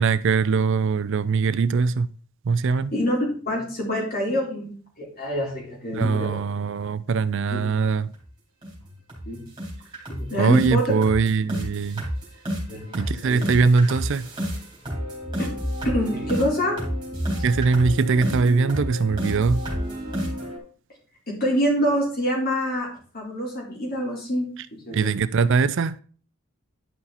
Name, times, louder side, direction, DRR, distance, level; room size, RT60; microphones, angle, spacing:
voice 1, 0.0-2.1 2.5-2.9 6.0-8.1 10.4-12.0 12.9-14.2 17.4-19.6 24.9-26.0, right 4 dB, 55° right, 0.4 m, -21 dB
voice 2, 2.9-4.7 5.0-6.4 7.5-7.6 9.2-9.4 10.1-10.8 12.7-13.4 15.4-15.5 15.8-16.8 21.3-22.9 23.1-25.1, equal, 40° left, 4.0 m, -26 dB
sound 1, 8.1-8.2 8.6-8.8 9.1-9.3 9.6-20.6, equal, 20° right, 3.8 m, -30 dB
11.0 x 5.6 x 4.2 m
head